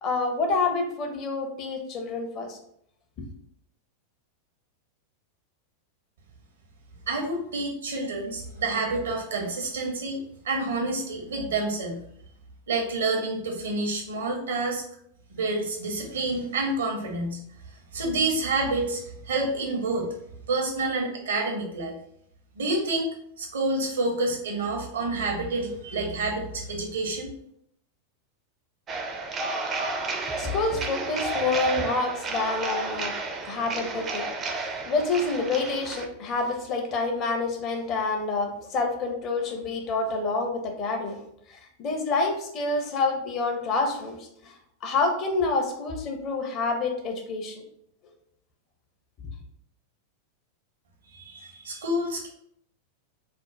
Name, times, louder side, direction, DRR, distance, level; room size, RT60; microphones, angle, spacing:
voice 1, 0.0-2.6 3.2-3.3 30.4-33.1 33.4-34.3 34.9-41.2 41.5-47.6, left 3 dB, 35° left, 3 dB, 0.5 m, -28 dB
voice 2, 7.1-10.2 10.4-12.0 12.7-14.8 15.3-17.4 17.9-20.1 20.5-21.9 22.6-23.1 23.4-27.3 51.1-52.3, right 2 dB, 65° right, 0 dB, 0.7 m, -28 dB
sound 1, 28.9-36.1, right 3 dB, 25° right, 0.4 m, -32 dB
2.4 x 2.1 x 3.0 m, 0.71 s
figure-of-eight pair, 90°, 0 cm